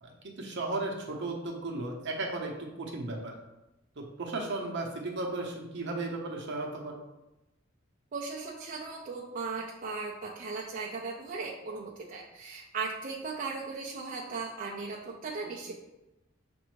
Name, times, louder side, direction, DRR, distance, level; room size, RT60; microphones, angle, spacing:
voice 1, 0.0-3.3 4.0-7.0, right 2 dB, 60° right, 1 dB, 0.8 m, -35 dB
voice 2, 8.1-15.8, right 4 dB, 45° right, -3 dB, 0.4 m, -37 dB
6.0 x 2.6 x 3.0 m, 0.97 s
head